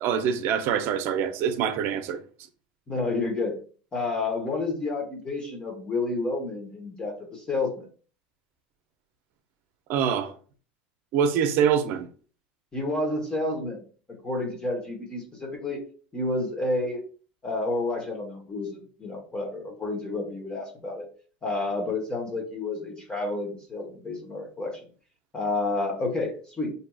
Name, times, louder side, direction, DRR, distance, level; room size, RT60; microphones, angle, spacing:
voice 1, 0.0-2.2 9.9-10.3 11.1-12.1, right 8 dB, 55° right, 0.6 m, -24 dB
voice 2, 2.9-3.6 3.9-7.9 12.7-13.8 14.1-15.8 16.1-17.0 17.4-21.1 21.4-24.8 25.3-26.7, left 2 dB, 20° left, 1.1 m, -30 dB
5.9 x 2.7 x 2.3 m
supercardioid pair, 120°, 5 cm